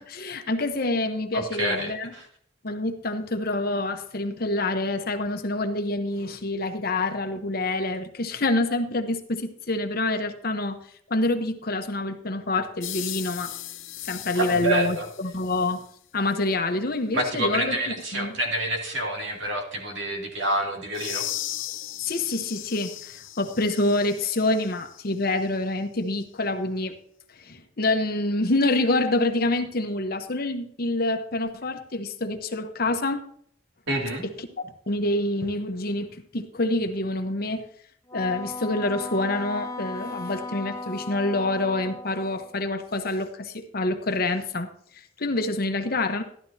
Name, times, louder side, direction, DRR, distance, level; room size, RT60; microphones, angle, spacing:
voice 1, 0.0-2.1 2.6-10.8 11.1-13.5 14.0-15.8 16.1-18.4 22.0-27.0 27.3-33.2 34.2-37.6 38.1-44.7 45.2-46.2, left 2 dB, 50° left, 7 dB, 1.0 m, -27 dB
voice 2, 1.3-2.2 14.4-15.1 17.1-21.3 33.9-34.2, right 1 dB, 70° right, 1 dB, 2.5 m, -28 dB
sound 1, 12.8-15.9 20.9-25.0, left 14 dB, 90° left, 0.7 m, -37 dB
Wind instrument woodwind instrument, 38.1-42.6, left 2 dB, 15° left, 0.5 m, -37 dB
12.5 x 11.5 x 2.8 m, 0.62 s
head